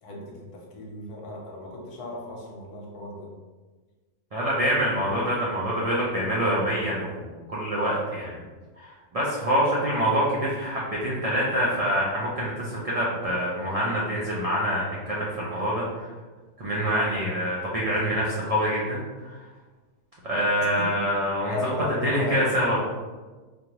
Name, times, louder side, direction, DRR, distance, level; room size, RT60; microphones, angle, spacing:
voice 1, 0.0-3.3 20.6-20.9 21.5-22.4, left 2 dB, 90° left, -1 dB, 1.4 m, -36 dB
voice 2, 4.3-8.4 8.8-16.1 16.6-19.4 20.2-21.7 22.0-22.8, equal, 45° right, -6 dB, 0.4 m, -26 dB
3.8 x 3.2 x 2.9 m, 1.3 s
omnidirectional pair, 1.6 m